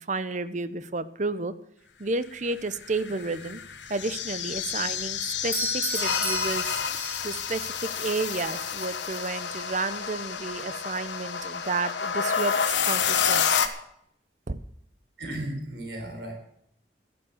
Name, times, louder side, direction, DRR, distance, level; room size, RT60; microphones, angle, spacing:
voice 1, 0.0-1.5 2.0-3.6 3.9-6.8 7.2-13.6 14.5-14.6, right 3 dB, 40° right, 13 dB, 0.8 m, -31 dB
sound 1, 2.8-13.7, left 7 dB, 85° left, 1.3 m, -29 dB
Doorbell, 5.5-7.5, right 1 dB, 10° right, 3.4 m, -32 dB
voice 2, 15.2-16.3, right 1 dB, 70° right, 2 dB, 4.1 m, -35 dB
11.5 x 11.0 x 7.2 m, 0.71 s
head